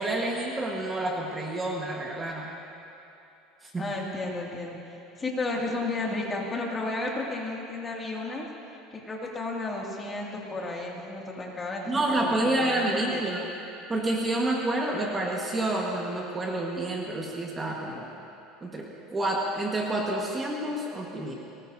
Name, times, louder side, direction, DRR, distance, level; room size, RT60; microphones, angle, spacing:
voice 1, 0.0-2.6 3.6-3.8 11.9-13.4 13.9-18.1 18.6-21.3, right 1 dB, 15° right, -1 dB, 1.4 m, -29 dB
voice 2, 3.8-8.5 8.9-13.2, left 2 dB, 20° left, -2 dB, 2.4 m, -33 dB
23.0 x 19.0 x 2.7 m, 2.8 s
cardioid pair, 140°, 0 cm